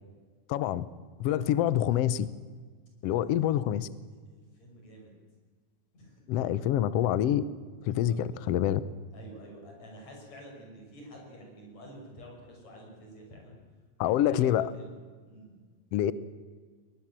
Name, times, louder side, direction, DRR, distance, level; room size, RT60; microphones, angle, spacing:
voice 1, 0.5-0.9 1.2-2.3 3.0-3.9 6.3-7.4 7.8-8.8 14.0-14.7 15.9-16.1, left 11 dB, 80° left, 16 dB, 1.4 m, -26 dB
voice 2, 4.3-5.1 5.9-6.2 6.5-6.6 8.1-8.3 9.1-13.6 14.0-15.0 15.3-15.5, equal, 55° left, 1 dB, 7.0 m, -49 dB
22.5 x 19.0 x 7.5 m, 1.5 s
omnidirectional pair, 3.7 m